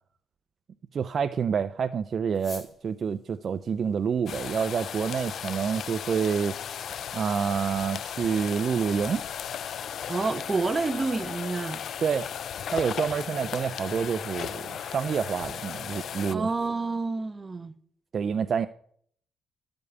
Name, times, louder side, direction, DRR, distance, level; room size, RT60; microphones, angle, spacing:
voice 1, 0.9-6.6 7.1-9.2 12.0-12.2 12.7-16.5 18.1-18.7, right 6 dB, 45° right, 0.4 m, -28 dB
sound 1, 2.3-17.0, left 2 dB, 35° left, 4.8 m, -57 dB
sound 2, 4.3-16.4, left 8 dB, 60° left, 0.4 m, -36 dB
voice 2, 10.1-11.8 16.3-17.7, right 3 dB, 25° right, 0.8 m, -28 dB
12.0 x 5.2 x 8.2 m
cardioid pair, 115°, 0 cm